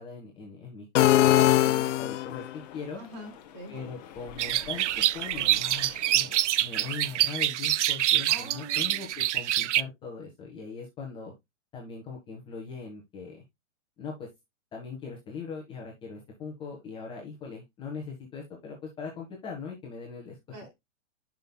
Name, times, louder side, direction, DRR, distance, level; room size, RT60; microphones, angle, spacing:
voice 1, 0.0-3.0 3.7-6.3 6.6-11.3 11.7-13.4 14.0-14.3 14.7-20.4, left 5 dB, 15° left, -1 dB, 1.3 m, -40 dB
sound 1, 0.9-2.5, left 14 dB, 70° left, 0.5 m, -21 dB
sound 2, 1.2-6.4, left 8 dB, 35° left, 1.0 m, -48 dB
voice 2, 3.0-3.7 5.3-5.6 8.3-9.2 20.5-20.7, right 1 dB, 35° right, 1 dB, 3.7 m, -44 dB
sound 3, 4.4-9.8, right 13 dB, 65° right, 0.5 m, -26 dB
10.0 x 5.7 x 2.2 m, 0.18 s
hypercardioid pair, 160°, 38 cm